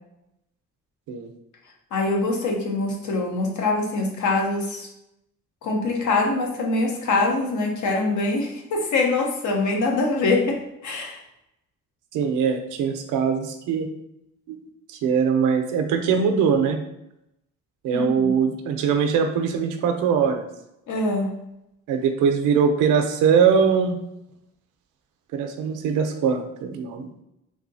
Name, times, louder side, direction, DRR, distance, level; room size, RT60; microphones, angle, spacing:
voice 1, 1.9-4.9 5.6-10.6 10.8-11.2 17.9-18.3 20.9-21.3, left 3 dB, 75° left, 1 dB, 0.8 m, -24 dB
voice 2, 12.1-13.9 14.5-14.6 14.9-16.8 17.8-20.4 21.9-24.0 25.3-27.1, right 6 dB, 90° right, 6 dB, 0.5 m, -21 dB
3.5 x 2.7 x 2.6 m, 0.83 s
cardioid pair, 90°, 30 cm